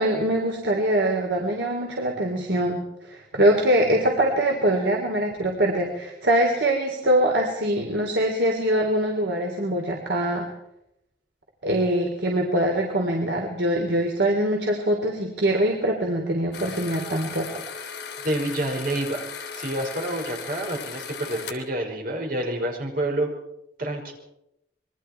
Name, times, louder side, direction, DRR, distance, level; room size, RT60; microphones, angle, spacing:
voice 1, 0.0-2.8 3.1-10.5 11.6-17.5, right 1 dB, 90° right, 1 dB, 3.6 m, -23 dB
sound 1, 16.5-21.5, left 6 dB, 70° left, 3.5 m, -37 dB
voice 2, 18.2-19.2 19.5-23.3 23.8-24.1, right 1 dB, 55° right, 2 dB, 5.7 m, -28 dB
26.5 x 22.5 x 4.7 m, 0.83 s
head